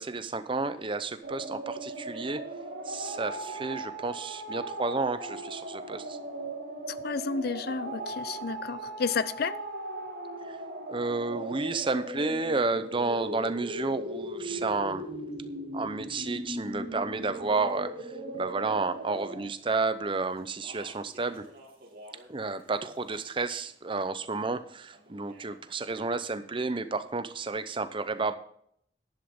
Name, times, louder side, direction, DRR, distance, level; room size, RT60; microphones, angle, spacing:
voice 1, 0.0-2.4 2.8-6.2 10.5-10.6 10.9-15.1 15.7-21.5 22.3-28.3, right 3 dB, 25° right, 0.6 m, -31 dB
sound 1, 1.2-19.4, right 1 dB, 80° right, 3.2 m, -38 dB
voice 2, 7.0-9.6, left 5 dB, 55° left, 0.5 m, -31 dB
Speech, 20.4-22.3 22.6-23.5 24.9-25.6, right 1 dB, 50° right, 2.8 m, -51 dB
11.0 x 11.0 x 3.6 m
head